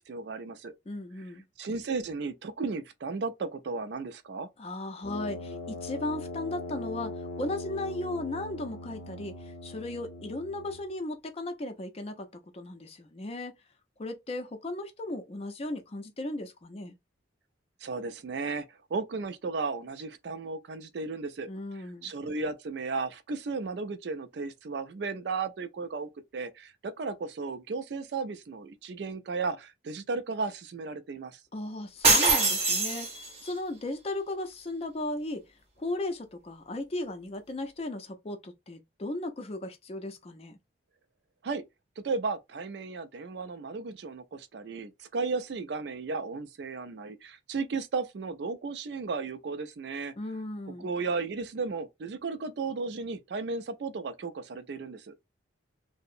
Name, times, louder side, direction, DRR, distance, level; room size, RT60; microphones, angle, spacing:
voice 1, 0.0-0.7 1.6-4.5 17.8-21.5 22.0-31.4 41.4-41.6 42.0-50.1 50.8-55.1, right 4 dB, 60° right, 0.4 m, -34 dB
voice 2, 0.9-1.4 4.6-13.5 14.0-17.0 21.5-22.1 31.5-35.5 35.8-40.6 50.2-50.9, left 2 dB, 30° left, 0.4 m, -36 dB
Brass instrument, 5.0-10.9, left 2 dB, 85° left, 0.5 m, -40 dB
ceramic cup shatters on tile floor, 32.0-33.5, right 3 dB, 35° right, 0.7 m, -23 dB
2.7 x 2.0 x 2.4 m
head